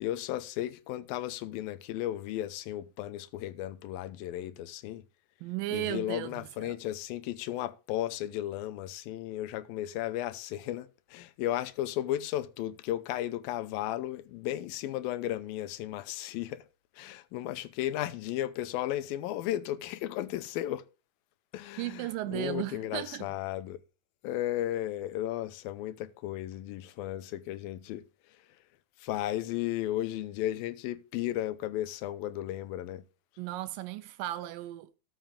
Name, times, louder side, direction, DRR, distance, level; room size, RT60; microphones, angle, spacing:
voice 1, 0.0-5.0 5.7-16.7 17.0-20.9 21.5-23.8 24.2-28.0 29.0-33.0, left 13 dB, 90° left, 2.6 m, -34 dB
voice 2, 5.4-6.3 6.6-6.8 21.8-23.3 33.4-35.0, right 15 dB, 80° right, 2.2 m, -35 dB
13.0 x 5.7 x 5.1 m
omnidirectional pair, 4.1 m